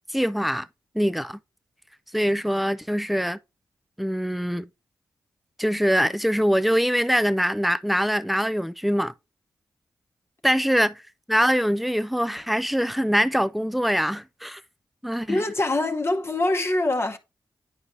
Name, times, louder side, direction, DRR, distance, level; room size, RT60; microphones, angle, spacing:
voice 1, 0.1-0.7 0.9-1.4 2.1-3.4 4.0-4.7 5.6-9.1 10.4-11.0 11.3-14.6 15.0-15.4, equal, ahead, 0.5 m, -23 dB
voice 2, 15.3-17.2, left 2 dB, 30° left, 1.0 m, -24 dB
9.8 x 4.7 x 2.6 m
cardioid pair, 60°, 8 cm